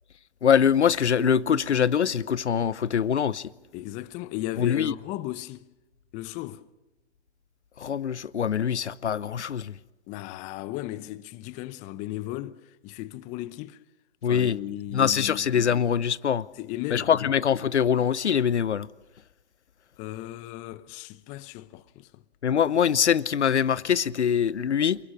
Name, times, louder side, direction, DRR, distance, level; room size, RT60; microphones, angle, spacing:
voice 1, 0.4-3.5 4.6-4.9 7.8-9.8 14.2-14.6 14.9-16.5 16.9-18.9 22.4-25.0, left 8 dB, 85° left, 0.9 m, -23 dB
sound 1, 1.2-4.6, right 18 dB, 20° right, 0.8 m, -47 dB
voice 2, 3.7-5.7 6.1-6.6 10.1-13.8 14.2-15.4 16.6-17.3 20.0-22.2, left 15 dB, 20° left, 0.7 m, -36 dB
28.5 x 20.5 x 6.2 m
hypercardioid pair, 135°, 34 cm